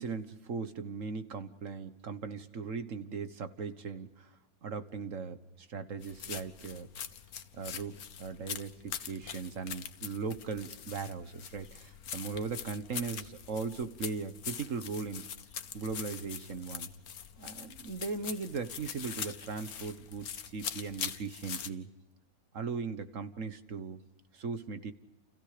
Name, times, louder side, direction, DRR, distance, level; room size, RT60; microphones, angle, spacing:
voice 1, 0.0-4.3 4.6-6.9 7.5-15.2 15.7-16.9 17.4-21.9 22.5-24.0 24.3-24.9, right 5 dB, 45° right, 10 dB, 1.5 m, -38 dB
sound 1, 6.0-21.7, left 8 dB, 60° left, 1.5 m, -43 dB
29.5 x 29.5 x 5.1 m, 0.93 s
omnidirectional pair, 2.0 m